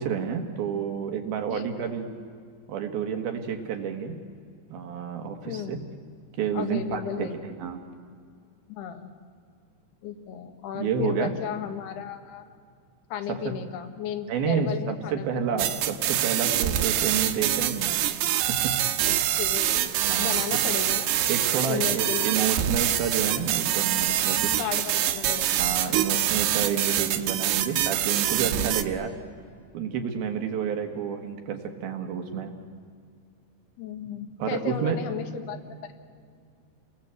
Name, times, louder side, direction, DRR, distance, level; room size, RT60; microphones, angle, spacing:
voice 1, 0.0-2.1 2.7-4.2 4.7-5.8 6.4-7.8 10.7-11.3 13.3-13.4 14.3-18.0 18.5-18.7 20.1-20.6 21.3-24.7 25.6-29.1 29.7-32.5 34.4-35.0, right 7 dB, 70° right, 5 dB, 3.3 m, -30 dB
voice 2, 1.5-1.9 5.4-5.8 6.5-7.4 8.7-9.1 10.0-12.4 13.1-15.3 19.0-21.1 21.7-22.5 24.6-25.5 33.8-35.9, left 8 dB, 80° left, 6 dB, 3.6 m, -34 dB
sound 1, 15.6-28.8, right 12 dB, 90° right, 3.1 m, -25 dB
29.5 x 21.0 x 8.1 m, 2.2 s
omnidirectional pair, 4.6 m